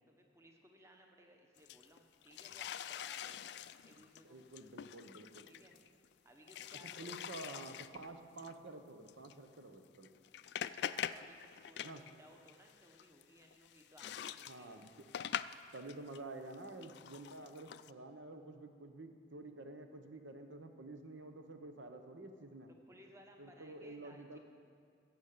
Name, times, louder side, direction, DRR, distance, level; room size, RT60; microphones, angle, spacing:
voice 1, 0.1-4.4 5.4-5.8 6.2-7.7 11.1-14.9 22.9-24.4, equal, 15° right, 2 dB, 1.1 m, -62 dB
sound 1, 1.6-6.1 6.5-8.1 8.4-8.5 9.1-9.3 9.9-12.1 12.4-16.2 16.5-17.9, left 9 dB, 60° left, 0.3 m, -45 dB
voice 2, 4.2-5.5 7.0-10.1 11.8-12.0 14.5-15.0 15.7-22.7 23.4-24.4, right 2 dB, 80° right, 6 dB, 1.0 m, -50 dB
15.0 x 8.1 x 6.7 m, 2.2 s
head